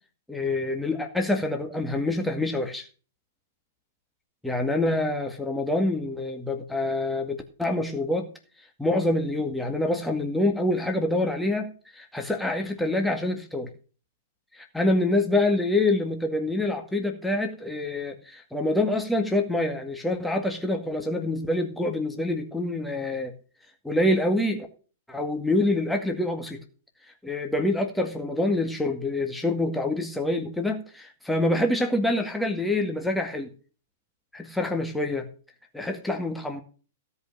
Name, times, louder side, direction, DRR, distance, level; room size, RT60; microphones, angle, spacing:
voice 1, 0.3-2.9 4.4-8.3 8.6-13.7 14.5-23.3 23.8-24.7 25.1-26.6 27.2-33.5 34.3-35.3 35.7-36.6, left 1 dB, 5° left, 3 dB, 2.0 m, -26 dB
16.5 x 5.6 x 6.4 m, 0.38 s
figure-of-eight pair, 105°, 0 cm